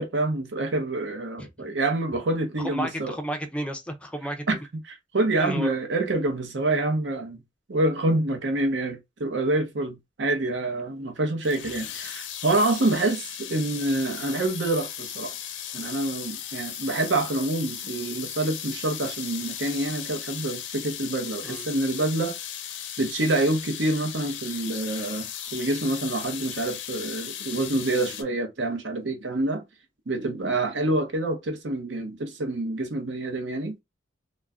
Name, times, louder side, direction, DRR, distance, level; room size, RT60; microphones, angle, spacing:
voice 1, 0.0-3.2 4.5-4.6 4.8-7.4 7.7-15.4 15.7-22.4 23.0-29.6 30.1-33.7, right 2 dB, 70° right, 0.7 m, -27 dB
voice 2, 2.6-4.6 5.4-5.7 21.4-21.7, right 1 dB, 5° left, 0.4 m, -33 dB
sound 1, 11.4-28.2, left 10 dB, 75° left, 0.5 m, -37 dB
2.3 x 2.1 x 3.5 m
head